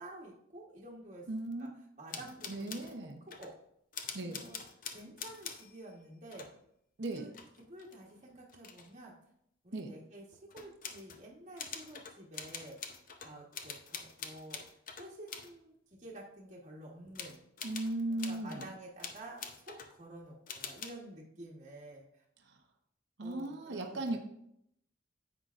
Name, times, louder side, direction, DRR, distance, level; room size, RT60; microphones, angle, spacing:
voice 1, 0.0-1.3 1.6-1.7 2.0-3.1 3.4-3.5 4.3-4.6 4.9-6.5 7.1-7.3 7.6-9.1 9.6-17.4 18.1-22.2 23.2-24.2, right 1 dB, 35° right, -4 dB, 1.2 m, -50 dB
voice 2, 1.3-1.7 2.5-3.2 4.1-4.4 7.0-7.3 9.7-9.9 17.6-18.6 22.4-22.6 23.2-24.2, right 2 dB, 60° right, 4 dB, 0.9 m, -37 dB
sound 1, 2.1-3.0 3.3-3.5 3.9-5.9 6.3-6.6 7.2-8.9 10.5-11.3 11.6-15.5 17.2-18.7 19.0-20.0 20.5-20.9, left 6 dB, 45° left, 0.7 m, -45 dB
10.5 x 7.9 x 2.5 m, 0.76 s
head